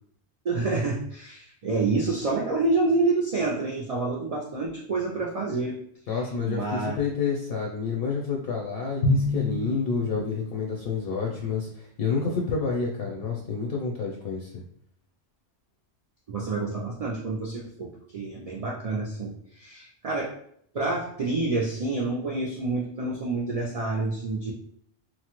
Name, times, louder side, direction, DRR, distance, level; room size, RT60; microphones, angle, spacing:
voice 1, 0.4-5.8 6.5-7.0 16.3-20.3 20.7-24.5, right 3 dB, 65° right, -2 dB, 0.3 m, -28 dB
voice 2, 6.1-14.6, left 5 dB, 65° left, -2 dB, 0.7 m, -29 dB
Drum, 9.0-10.8, left 2 dB, 85° left, 1.0 m, -27 dB
3.0 x 2.1 x 2.9 m, 0.66 s
omnidirectional pair, 1.2 m